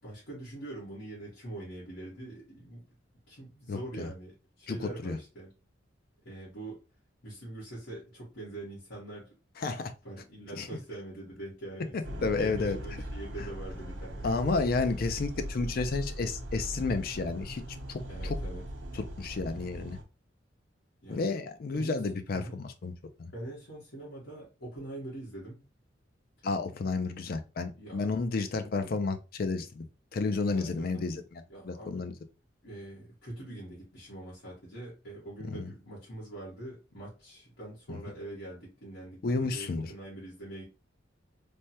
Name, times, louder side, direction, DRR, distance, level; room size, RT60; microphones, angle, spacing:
voice 1, 0.0-2.9 3.3-5.5 6.2-6.8 7.2-9.3 10.0-14.4 18.1-18.6 21.0-21.3 21.7-22.0 22.3-22.6 23.3-25.6 27.8-28.1 30.5-31.2 31.5-32.1 32.6-40.6, right 1 dB, 85° left, 1.3 m, -43 dB
voice 2, 3.7-4.1 4.7-4.8 5.0-5.2 9.6-9.9 10.5-10.7 12.2-12.8 14.2-17.6 17.9-18.4 18.9-20.0 21.1-22.9 23.2-23.3 26.4-29.9 30.1-32.1 35.4-35.7 37.9-38.0 39.2-39.9, left 3 dB, 50° left, 0.4 m, -31 dB
sound 1, 12.0-20.0, equal, 80° right, 0.7 m, -39 dB
3.3 x 2.1 x 2.7 m
head